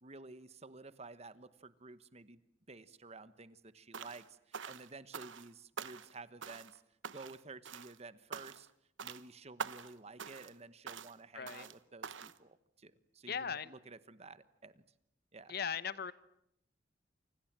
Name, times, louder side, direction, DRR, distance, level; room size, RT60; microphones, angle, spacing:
voice 1, 0.0-2.4 2.7-6.8 7.1-8.7 9.0-14.8 15.3-15.5, right 3 dB, 35° right, 14 dB, 1.2 m, -52 dB
sound 1, 3.9-4.3 4.5-5.5 5.8-6.2 6.4-6.8 7.0-7.4 7.7-8.0 8.3-8.7 9.0-9.2 9.6-9.9 10.2-10.6 10.9-11.1 11.5-11.8 12.0-12.4, right 6 dB, 85° right, 1.1 m, -45 dB
voice 2, 11.3-11.7 13.3-13.7 15.5-16.1, left 7 dB, 55° left, 16 dB, 1.0 m, -38 dB
29.5 x 26.0 x 7.5 m, 0.76 s
head